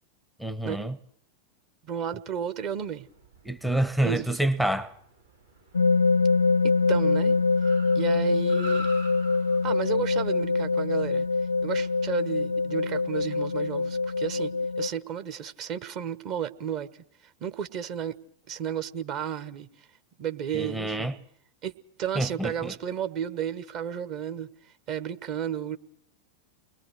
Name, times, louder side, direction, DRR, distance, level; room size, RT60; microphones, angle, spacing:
voice 1, 0.4-1.0 3.4-5.0 20.5-21.1 22.2-22.7, right 1 dB, 5° right, 0.8 m, -27 dB
voice 2, 1.8-3.1 4.0-4.4 6.6-7.4 7.9-8.9 9.6-11.3 11.6-16.9 17.4-18.1 18.5-19.7 20.2-21.1 21.6-21.7 22.0-24.5 24.9-25.8, right 9 dB, 40° right, 1.2 m, -33 dB
Car, 2.8-12.3, right 1 dB, 85° right, 3.2 m, -47 dB
sound 1, 5.7-14.9, left 4 dB, 80° left, 0.8 m, -24 dB
29.5 x 21.5 x 4.7 m
figure-of-eight pair, 90°, 0 cm